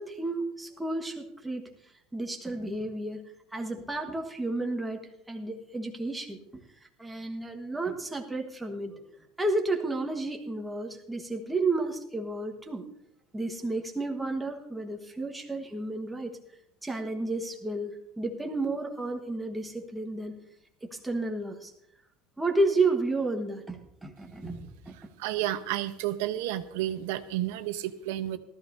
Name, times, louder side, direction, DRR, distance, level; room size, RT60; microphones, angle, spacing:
voice 1, 0.0-1.6 2.1-3.2 3.5-5.0 5.3-6.5 7.0-9.1 9.4-12.8 13.3-16.3 16.8-17.9 18.2-20.4 20.8-21.7 22.4-24.9, right 2 dB, 5° right, 2 dB, 1.4 m, -31 dB
voice 2, 25.2-28.4, right 13 dB, 75° right, 10 dB, 0.9 m, -31 dB
18.0 x 13.5 x 2.7 m, 0.79 s
cardioid pair, 155°, 0 cm